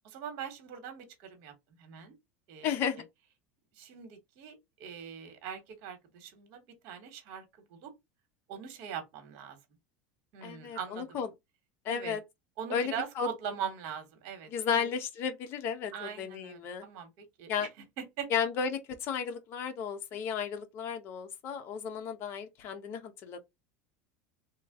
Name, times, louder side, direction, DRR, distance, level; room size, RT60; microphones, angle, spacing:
voice 1, 0.0-1.5 1.8-2.1 2.5-3.0 3.8-7.4 7.7-7.9 8.5-9.6 10.3-11.1 11.9-12.2 12.6-14.9 15.9-17.7 18.2-18.3, right 8 dB, 60° right, 1.2 m, -41 dB
voice 2, 2.6-3.0 10.4-11.3 11.8-12.2 12.7-13.3 14.5-16.9 17.5-17.7 18.3-23.4, left 7 dB, 45° left, 0.9 m, -34 dB
3.0 x 2.4 x 3.7 m
supercardioid pair, 130°, 5 cm